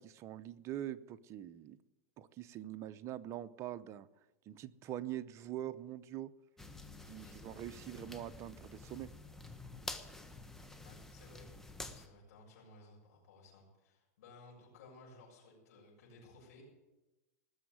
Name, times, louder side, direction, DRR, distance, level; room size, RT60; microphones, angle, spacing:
voice 1, 0.0-1.8 2.2-4.1 4.5-6.3 7.1-9.1, right 12 dB, 35° right, 12 dB, 0.7 m, -44 dB
sound 1, 6.6-12.1, left 2 dB, 5° left, 1.2 m, -49 dB
voice 2, 10.8-11.5 11.9-16.6, left 3 dB, 75° left, -4 dB, 7.2 m, -58 dB
19.0 x 7.2 x 9.4 m, 1.0 s
hypercardioid pair, 125°, 9 cm